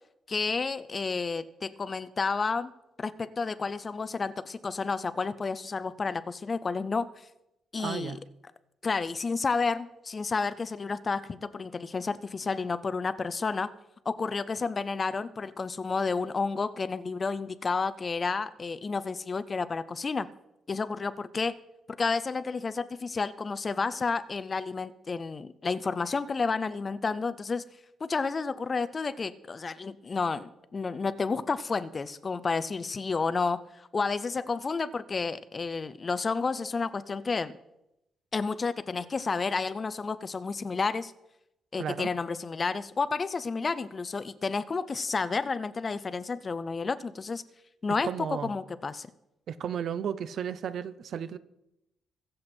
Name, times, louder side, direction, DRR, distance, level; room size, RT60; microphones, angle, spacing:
voice 1, 0.3-2.7 3.0-7.3 7.7-8.2 8.8-13.7 14.1-20.3 20.7-21.5 21.9-27.6 28.0-37.5 38.3-41.1 41.7-47.4 47.8-49.1, left 4 dB, 25° left, 15 dB, 0.4 m, -31 dB
voice 2, 7.8-8.2 41.8-42.1 48.0-48.5 49.5-51.4, right 8 dB, 50° right, 15 dB, 0.7 m, -34 dB
23.0 x 7.7 x 4.3 m, 0.86 s
cardioid pair, 180°, 0 cm